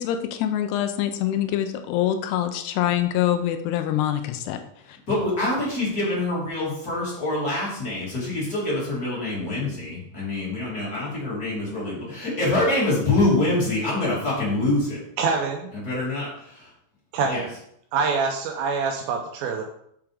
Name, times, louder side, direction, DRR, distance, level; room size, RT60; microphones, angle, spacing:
voice 1, 0.0-4.6 4.9-5.0, left 11 dB, 85° left, 8 dB, 2.6 m, -25 dB
voice 2, 5.1-15.0 15.8-16.6 17.3-17.4, left 2 dB, 25° left, -8 dB, 3.3 m, -25 dB
voice 3, 15.2-15.7 17.1-17.5 17.9-19.6, right 4 dB, 80° right, 2 dB, 2.3 m, -25 dB
6.8 x 6.7 x 3.5 m, 0.71 s
omnidirectional pair, 4.7 m